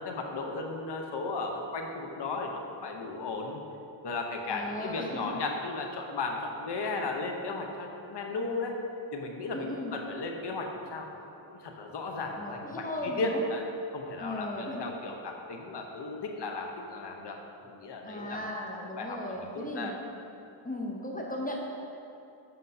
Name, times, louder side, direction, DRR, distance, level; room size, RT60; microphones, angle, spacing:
voice 1, 0.0-3.6 4.0-8.7 9.1-11.1 11.4-13.6 13.9-17.4 17.6-18.5 18.9-19.9, left 3 dB, 55° left, 2 dB, 0.9 m, -35 dB
voice 2, 4.5-5.2 9.5-10.0 12.4-13.4 14.2-14.8 18.0-20.0 20.6-21.6, left 1 dB, 15° left, -1 dB, 0.7 m, -36 dB
7.6 x 5.3 x 2.7 m, 2.7 s
cardioid pair, 80°, 50 cm